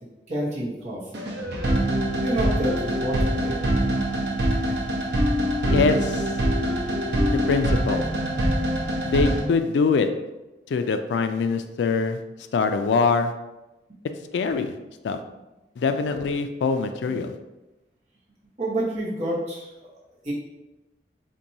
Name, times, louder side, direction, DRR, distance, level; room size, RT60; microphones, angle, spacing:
voice 1, 0.3-1.2 2.2-4.2 18.6-19.7 20.2-20.3, right 1 dB, 40° right, -7 dB, 1.1 m, -29 dB
sound 1, 1.1-9.4, equal, 75° right, 0.8 m, -24 dB
voice 2, 5.7-6.3 7.3-8.1 9.1-10.1 10.7-12.2 12.5-13.3 14.3-14.7 15.0-15.2 15.8-17.3, left 4 dB, 80° left, 8 dB, 0.3 m, -23 dB
4.4 x 2.6 x 2.7 m, 1.0 s
head